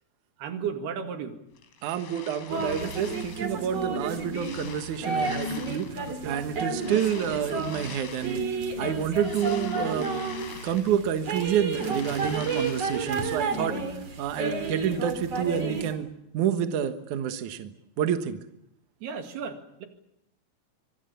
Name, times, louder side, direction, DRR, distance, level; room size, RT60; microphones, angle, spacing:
voice 1, 0.4-1.4 19.0-19.9, right 6 dB, 60° right, 5 dB, 3.7 m, -34 dB
sound 1, 1.6-3.6 4.0-6.1 6.7-8.5 9.0-11.2 11.5-13.4, left 7 dB, 75° left, 5.7 m, -45 dB
voice 2, 1.8-8.5 8.8-10.1 10.5-13.7 14.2-16.1 16.3-18.4, right 9 dB, 80° right, 8 dB, 1.7 m, -28 dB
sound 2, 2.5-15.9, right 3 dB, 35° right, 3.4 m, -31 dB
25.5 x 25.0 x 6.9 m, 0.81 s
omnidirectional pair, 5.8 m